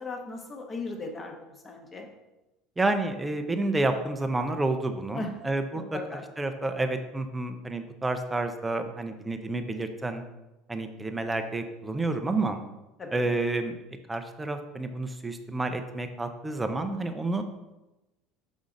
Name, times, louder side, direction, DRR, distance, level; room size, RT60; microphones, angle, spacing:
voice 1, 0.0-2.1 5.1-5.3 5.7-6.2 13.0-13.3, left 3 dB, 20° left, 3 dB, 1.0 m, -37 dB
voice 2, 2.8-5.8 6.4-10.2 10.7-12.6 13.1-13.8 14.1-17.4, right 2 dB, 10° right, 7 dB, 0.5 m, -29 dB
6.1 x 5.5 x 3.8 m, 1.0 s
cardioid pair, 155°, 0 cm